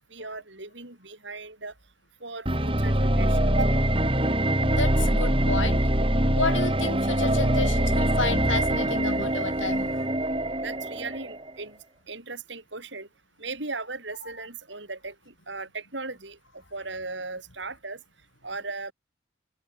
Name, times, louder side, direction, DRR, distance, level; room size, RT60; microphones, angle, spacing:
voice 1, 0.0-1.7 2.2-3.8 10.6-11.8 12.1-13.1 13.4-18.0 18.4-18.9, right 3 dB, 70° right, 6.1 m, -37 dB
sound 1, 2.5-11.5, right 1 dB, 30° right, 4.9 m, -24 dB
voice 2, 4.7-5.8 6.4-10.1 14.2-14.3, left 3 dB, 85° left, 7.7 m, -31 dB
head